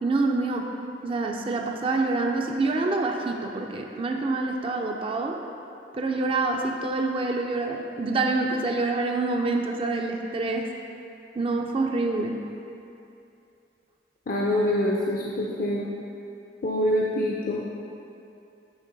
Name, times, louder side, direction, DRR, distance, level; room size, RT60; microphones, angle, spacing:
voice 1, 0.0-0.7 1.0-5.4 5.9-10.7 11.4-12.4, right 3 dB, 30° right, 2 dB, 0.4 m, -26 dB
voice 2, 14.3-15.9 16.6-17.7, left 1 dB, 50° left, -3 dB, 0.5 m, -25 dB
9.7 x 3.6 x 3.9 m, 2.7 s
head